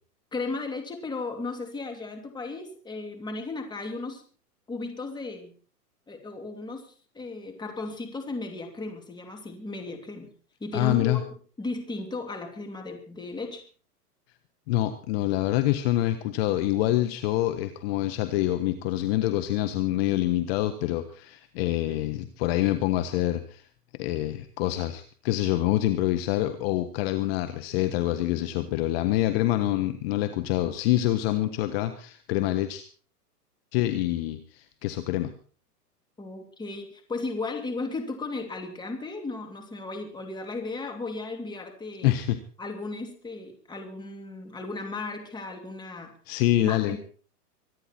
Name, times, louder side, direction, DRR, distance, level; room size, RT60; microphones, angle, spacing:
voice 1, 0.3-4.2 4.7-5.5 6.1-10.3 10.6-11.2 11.6-13.6 36.2-42.1 42.6-46.2 46.6-47.0, left 3 dB, 10° left, 4 dB, 2.7 m, -35 dB
voice 2, 10.7-11.2 14.7-23.6 24.0-32.8 33.7-35.3 42.0-42.4 46.3-47.0, left 14 dB, 40° left, 9 dB, 1.3 m, -26 dB
24.5 x 9.9 x 4.4 m, 0.41 s
hypercardioid pair, 135°, 47 cm